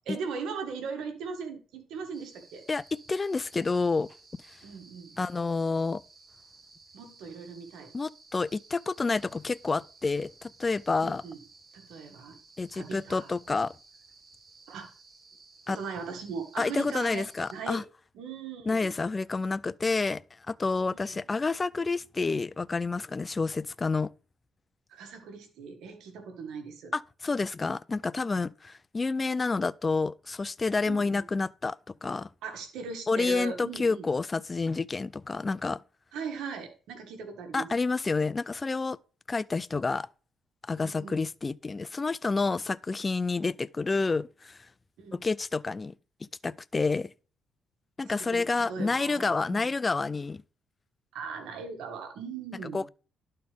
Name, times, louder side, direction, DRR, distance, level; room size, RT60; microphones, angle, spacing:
voice 1, 0.0-2.6 4.6-5.2 6.9-7.9 10.9-11.4 11.7-12.4 12.7-13.3 14.7-14.9 15.7-17.2 17.5-17.8 18.1-19.0 21.1-21.2 24.9-26.9 30.9-31.2 32.4-34.1 36.1-37.7 40.7-41.3 45.0-45.2 48.1-49.7 51.1-52.8, right 5 dB, 85° right, 1.7 m, -39 dB
sound 1, 2.1-17.6, right 3 dB, 40° right, 4.5 m, -56 dB
voice 2, 2.7-4.1 4.5-4.6 5.2-6.0 7.9-11.2 12.6-13.7 15.7-15.8 16.6-17.8 18.7-24.1 26.9-32.3 33.1-35.8 37.5-39.0 39.3-40.1 40.6-44.7 45.1-45.9 46.2-47.1 48.0-50.4 52.7-52.9, left 3 dB, 25° left, 0.3 m, -29 dB
11.5 x 4.3 x 3.4 m
cardioid pair, 90°, 0 cm